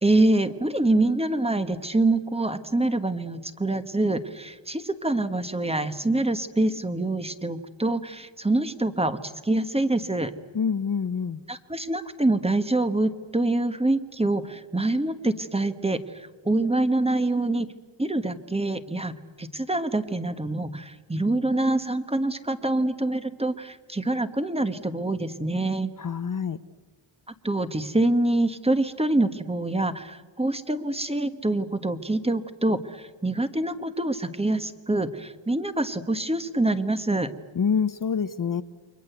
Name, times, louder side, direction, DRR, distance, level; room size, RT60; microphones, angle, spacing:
voice 1, 0.0-10.3 11.5-17.7 18.0-25.9 27.4-37.3, right 2 dB, 10° right, 10 dB, 1.3 m, -25 dB
voice 2, 10.5-11.4 26.0-26.6 37.6-38.6, left 6 dB, 40° left, 12 dB, 0.8 m, -26 dB
29.0 x 24.5 x 8.1 m, 1.4 s
wide cardioid pair, 150°, 48 cm